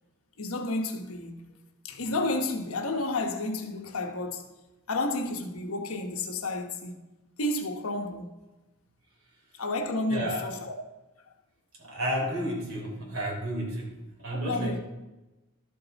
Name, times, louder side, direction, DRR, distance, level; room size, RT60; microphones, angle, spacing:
voice 1, 0.4-1.5 1.8-4.4 4.9-7.0 7.4-8.3 9.6-10.8 14.4-14.8, left 2 dB, 70° left, 1.1 m, -31 dB
voice 2, 10.1-10.5 11.8-14.8, right 1 dB, 70° right, 3.5 m, -32 dB
12.0 x 7.6 x 4.0 m
head